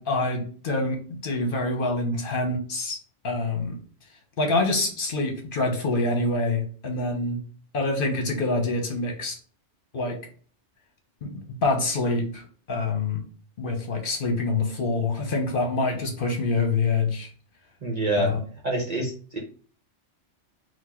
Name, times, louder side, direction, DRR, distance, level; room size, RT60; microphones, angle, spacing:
voice 1, 0.0-3.0 3.2-3.7 4.4-7.4 7.7-9.4 9.9-10.2 11.2-13.2 13.6-17.3 18.2-18.4, left 2 dB, 50° left, 3 dB, 1.1 m, -26 dB
voice 2, 17.8-18.3 18.6-19.4, right 1 dB, 40° right, 0 dB, 0.8 m, -26 dB
4.3 x 2.4 x 4.4 m, 0.42 s
omnidirectional pair, 1.2 m